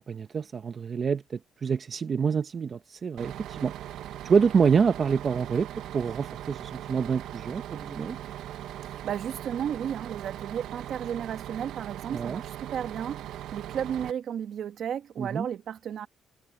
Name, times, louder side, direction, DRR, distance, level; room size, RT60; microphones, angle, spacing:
voice 1, 0.0-3.7 4.2-8.2 12.1-12.4 15.2-15.5, right 6 dB, 45° right, 0.9 m, -27 dB
Bus, 3.2-14.1, right 12 dB, 80° right, 0.9 m, -40 dB
voice 2, 8.9-16.1, right 9 dB, 65° right, 1.5 m, -33 dB
cardioid pair, 90°, 0 cm